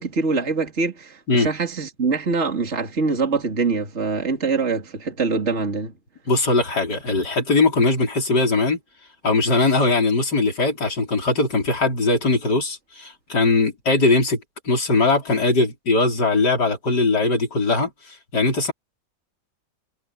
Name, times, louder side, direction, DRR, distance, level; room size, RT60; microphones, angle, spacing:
voice 1, 0.0-5.9, right 4 dB, 35° right, 3.1 m, -24 dB
voice 2, 6.3-8.8 9.2-18.7, left 3 dB, 65° left, 5.5 m, -20 dB
omnidirectional pair, 1.9 m